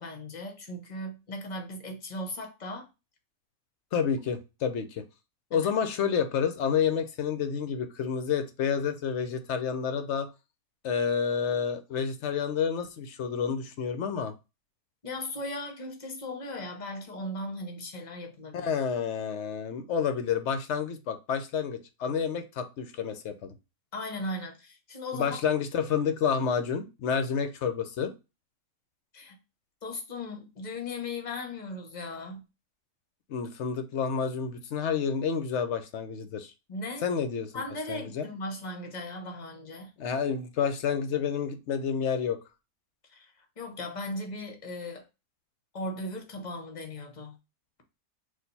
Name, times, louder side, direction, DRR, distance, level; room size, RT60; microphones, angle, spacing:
voice 1, 0.0-2.9 5.5-5.7 15.0-18.7 23.9-25.4 29.1-29.4 29.8-32.4 36.7-37.1 37.5-39.9 43.1-45.0 45.7-47.3, left 1 dB, 35° left, 0.9 m, -37 dB
voice 2, 3.9-5.0 5.5-10.3 10.8-14.3 18.5-23.5 25.1-28.1 33.3-36.5 37.0-37.6 37.9-38.3 40.0-42.4, left 7 dB, 60° left, 0.8 m, -29 dB
4.3 x 2.5 x 4.0 m
omnidirectional pair, 1.5 m